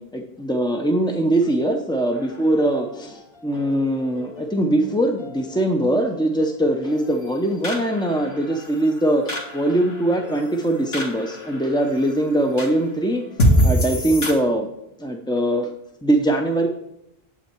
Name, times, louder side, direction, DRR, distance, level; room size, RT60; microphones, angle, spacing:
voice 1, 0.0-13.2 13.6-14.7 15.0-15.7 16.0-16.7, right 1 dB, 5° left, 2 dB, 0.5 m, -22 dB
sound 1, 2.1-14.3, equal, 75° left, 1.9 m, -27 dB
8.7 x 8.2 x 4.5 m, 0.85 s
omnidirectional pair, 1.1 m